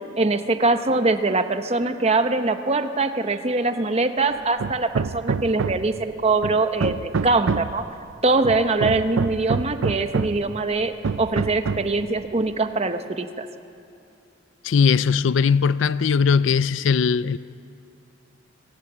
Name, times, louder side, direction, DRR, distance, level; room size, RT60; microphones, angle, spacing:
voice 1, 0.2-7.8 8.2-13.5, right 3 dB, 30° right, 0.9 m, -23 dB
Hammer, 4.6-6.0 6.4-7.8 8.4-10.5 11.0-12.0, right 5 dB, 85° right, 0.5 m, -26 dB
voice 2, 14.6-17.4, left 6 dB, 70° left, 0.4 m, -19 dB
26.0 x 16.0 x 8.0 m
head